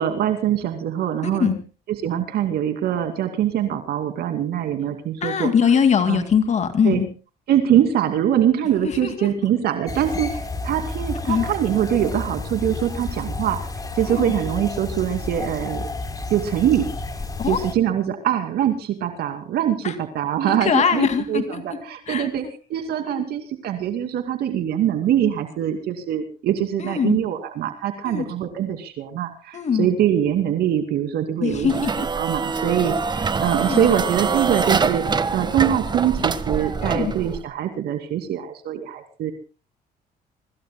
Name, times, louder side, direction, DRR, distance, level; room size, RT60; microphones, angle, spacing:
voice 1, 0.0-1.5 2.0-5.5 6.1-6.2 6.8-7.0 7.5-13.6 14.0-15.9 16.3-16.9 17.5-31.9 32.2-35.0 35.3-39.3, right 10 dB, 70° right, 7 dB, 2.5 m, -23 dB
voice 2, 5.2-7.1 8.8-9.3 11.3-11.5 14.1-14.2 17.4-17.6 19.8-19.9 20.5-21.8 22.1-22.3 23.1-23.2 26.8-27.2 28.0-28.3 29.5-29.9 31.4-32.1 33.6-33.9 36.8-37.1, left 7 dB, 45° left, 9 dB, 2.2 m, -22 dB
sound 1, 9.9-17.8, left 3 dB, 20° left, 3.7 m, -31 dB
sound 2, 31.6-37.4, right 5 dB, 25° right, 1.4 m, -24 dB
25.0 x 23.5 x 2.2 m, 0.36 s
cardioid pair, 110°, 17 cm